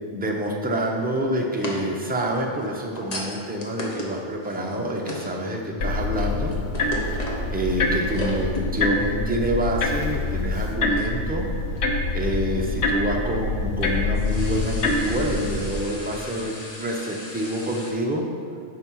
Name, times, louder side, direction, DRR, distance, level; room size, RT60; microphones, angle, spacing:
voice 1, 0.1-6.5 7.5-11.5 12.1-18.2, right 1 dB, 10° right, 0 dB, 0.8 m, -27 dB
sound 1, 1.5-5.5 5.9-7.6 7.9-8.7 9.0-9.1 10.0-10.2 11.0-11.3 11.8-11.9 13.5-17.9, left 1 dB, 35° left, 1.2 m, -36 dB
sound 2, 5.8-15.7, left 2 dB, 80° left, 1.2 m, -26 dB
9.3 x 5.7 x 4.7 m, 2.4 s
omnidirectional pair, 1.1 m